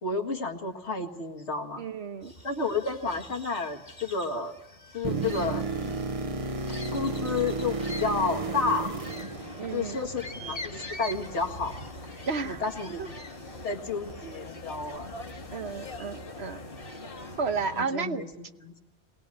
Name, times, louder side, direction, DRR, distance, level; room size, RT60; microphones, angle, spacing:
voice 1, 0.0-1.9 2.4-4.6 4.9-5.9 6.9-8.9 9.7-11.7 12.4-13.0 13.6-15.1 17.8-18.8, left 4 dB, 70° left, 4 dB, 2.2 m, -31 dB
voice 2, 1.8-2.3 9.6-10.0 12.3-12.6 13.0-13.1 15.5-16.6 17.4-18.3, right 5 dB, 65° right, 8 dB, 1.3 m, -32 dB
sound 1, 2.2-17.4, left 1 dB, 30° left, 1.7 m, -47 dB
sound 2, 5.0-10.1 14.1-14.2, right 3 dB, 30° right, 0.9 m, -32 dB
sound 3, 9.0-17.8, left 1 dB, 50° left, 1.7 m, -43 dB
23.0 x 18.5 x 9.8 m, 1.1 s
omnidirectional pair, 1.2 m